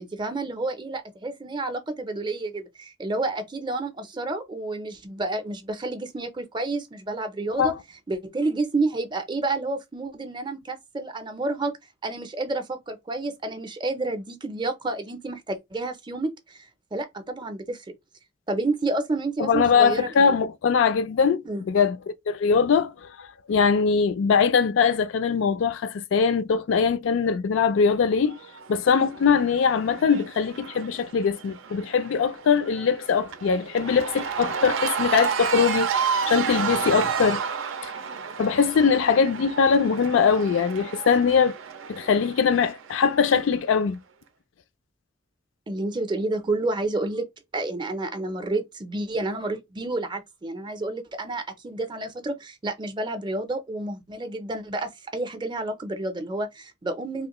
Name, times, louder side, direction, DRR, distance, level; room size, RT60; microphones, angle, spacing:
voice 1, 0.0-7.7 8.1-11.7 12.0-16.7 16.9-17.9 18.5-20.1 21.4-21.6 45.7-47.3 47.5-57.3, right 2 dB, 25° right, 0.5 m, -30 dB
voice 2, 19.4-22.0 22.3-28.3 28.7-35.9 36.3-37.4 37.8-37.9 38.4-41.5 41.9-44.0, left 6 dB, 70° left, 0.3 m, -22 dB
Cheering / Crowd, 28.2-43.5, right 6 dB, 80° right, 0.5 m, -31 dB
3.0 x 2.5 x 2.9 m
head